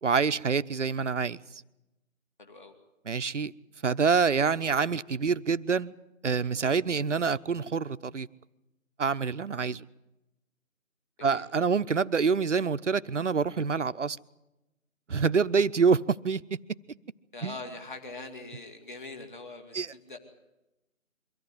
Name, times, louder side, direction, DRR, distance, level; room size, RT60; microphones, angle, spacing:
voice 1, 0.0-1.4 3.1-3.5 3.8-5.9 6.2-8.3 9.0-9.8 11.2-14.2 15.1-16.4 17.4-17.5 19.7-19.9, right 5 dB, 60° right, 13 dB, 0.7 m, -26 dB
voice 2, 2.4-2.7 11.2-11.5 17.3-20.2, left 3 dB, 35° left, 5 dB, 2.5 m, -43 dB
23.5 x 14.5 x 9.6 m, 0.96 s
figure-of-eight pair, 165°, 41 cm